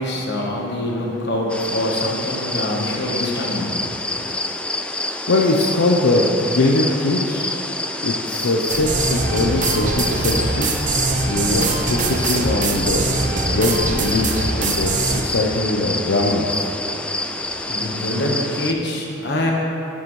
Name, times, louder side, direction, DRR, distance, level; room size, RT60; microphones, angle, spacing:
voice 1, 0.0-4.3 17.0-19.5, left 1 dB, 60° left, -1 dB, 1.2 m, -25 dB
Grillons-Amb nuit(st), 1.5-18.7, left 2 dB, 5° left, 0.3 m, -27 dB
voice 2, 5.0-7.6 8.0-10.8 11.2-13.1 13.5-16.7, left 2 dB, 80° left, -2 dB, 0.6 m, -21 dB
sound 1, 8.7-15.2, right 3 dB, 45° right, 0.7 m, -22 dB
11.0 x 7.7 x 3.2 m, 2.8 s
head